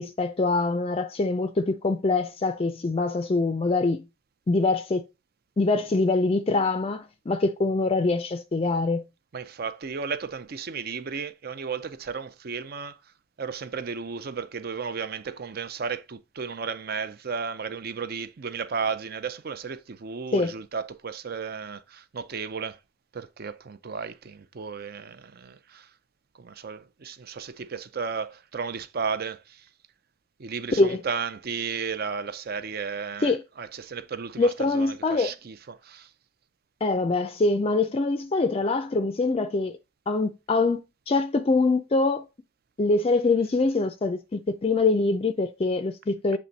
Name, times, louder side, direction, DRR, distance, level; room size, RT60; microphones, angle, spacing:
voice 1, 0.0-4.1 4.5-5.0 5.6-9.1 20.3-20.5 30.8-31.0 33.2-33.4 34.4-35.3 36.8-39.8 40.1-40.8 41.1-42.3 42.8-46.4, left 3 dB, 30° left, 0.4 m, -24 dB
voice 2, 9.3-13.0 13.4-22.8 23.1-25.9 26.4-29.7 30.4-36.1, right 5 dB, 50° right, 0.5 m, -34 dB
7.3 x 3.4 x 4.0 m
head